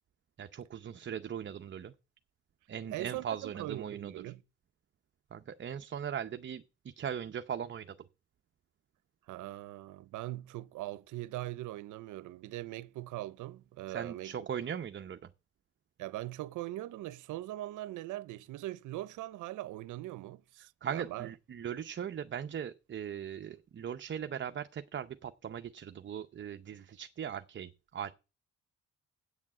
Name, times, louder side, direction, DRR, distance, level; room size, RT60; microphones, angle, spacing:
voice 1, 0.4-1.9 2.7-4.3 5.3-7.9 13.9-15.3 20.8-28.1, right 8 dB, 40° right, 0.7 m, -39 dB
voice 2, 2.9-4.4 9.3-14.3 16.0-21.3, right 16 dB, 85° right, 0.6 m, -41 dB
8.4 x 7.2 x 7.3 m
cardioid pair, 90°, 30 cm